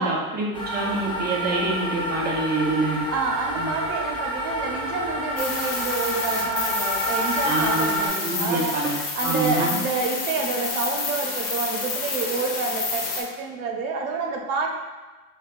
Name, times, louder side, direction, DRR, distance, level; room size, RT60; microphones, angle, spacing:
voice 1, 0.0-3.0 3.6-3.7 7.4-8.9 9.2-9.8, right 2 dB, 25° right, -2 dB, 0.7 m, -26 dB
sound 1, 0.5-8.1, equal, 15° left, 0.5 m, -28 dB
voice 2, 3.1-8.8 9.2-14.7, right 4 dB, 90° right, 2 dB, 0.7 m, -28 dB
sound 2, 5.4-13.2, left 4 dB, 45° left, 1.0 m, -29 dB
5.1 x 2.3 x 2.5 m, 1.3 s
supercardioid pair, 125°, 41 cm